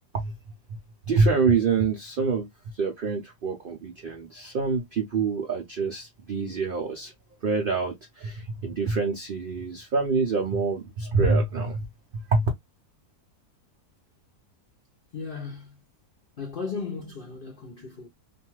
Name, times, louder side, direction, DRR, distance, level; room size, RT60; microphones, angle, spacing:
voice 1, 1.1-2.5 2.8-7.1 7.4-11.8 12.3-12.5, right 4 dB, 65° right, 0.5 m, -26 dB
voice 2, 15.1-15.8 16.4-18.1, left 5 dB, 60° left, 0.6 m, -36 dB
2.6 x 2.3 x 2.9 m
omnidirectional pair, 1.6 m